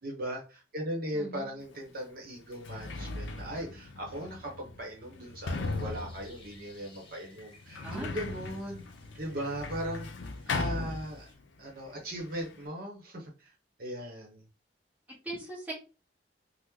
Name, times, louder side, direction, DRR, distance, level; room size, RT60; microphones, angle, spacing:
voice 1, 0.0-8.8 9.2-10.1 10.5-11.3 11.6-13.5 13.8-14.4, equal, 55° right, 0 dB, 0.9 m, -38 dB
voice 2, 1.1-1.5 7.8-8.1 15.2-15.7, right 1 dB, 10° right, -4 dB, 1.0 m, -39 dB
Sliding door, 1.7-1.8 2.4-11.6 11.8-12.7, left 3 dB, 85° left, 0.5 m, -38 dB
sound 1, 5.4-11.4, left 3 dB, 30° left, 1.0 m, -59 dB
3.0 x 2.1 x 3.5 m, 0.32 s
head